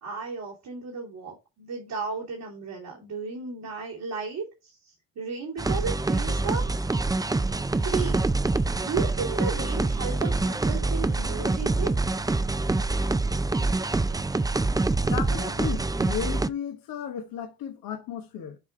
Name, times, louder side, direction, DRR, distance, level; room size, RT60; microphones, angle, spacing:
voice 1, 0.0-6.8 7.8-8.2 8.8-11.9, right 4 dB, 75° right, 3.1 m, -34 dB
sound 1, 5.6-16.5, right 3 dB, 10° right, 0.5 m, -25 dB
voice 2, 15.0-18.6, left 8 dB, 80° left, 1.1 m, -34 dB
7.9 x 3.5 x 4.6 m
supercardioid pair, 45°, 35 cm